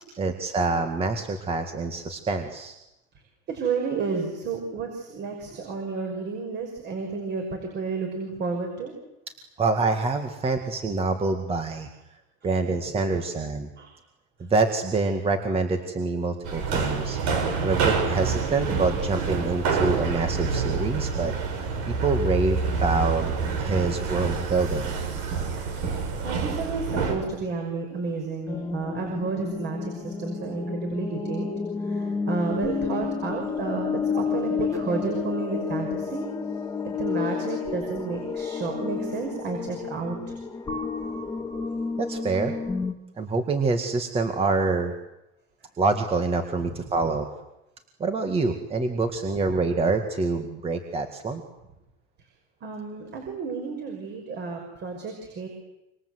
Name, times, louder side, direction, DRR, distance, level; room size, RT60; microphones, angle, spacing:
voice 1, 0.2-2.7 9.6-11.9 12.4-13.7 14.4-17.2 17.6-21.3 21.9-23.3 23.6-24.9 42.0-42.5 43.2-44.9 45.8-47.3 48.0-51.4, right 3 dB, 20° right, 6 dB, 2.1 m, -26 dB
voice 2, 3.5-8.9 13.1-13.2 13.8-13.9 26.2-31.5 31.8-36.3 36.8-40.4 52.6-55.5, right 4 dB, 35° right, 3 dB, 5.8 m, -31 dB
sound 1, 16.4-27.2, right 5 dB, 70° right, 7.4 m, -27 dB
sound 2, 28.5-42.9, left 5 dB, 10° left, 1.6 m, -31 dB
27.5 x 25.5 x 8.1 m, 0.89 s
cardioid pair, 155°, 29 cm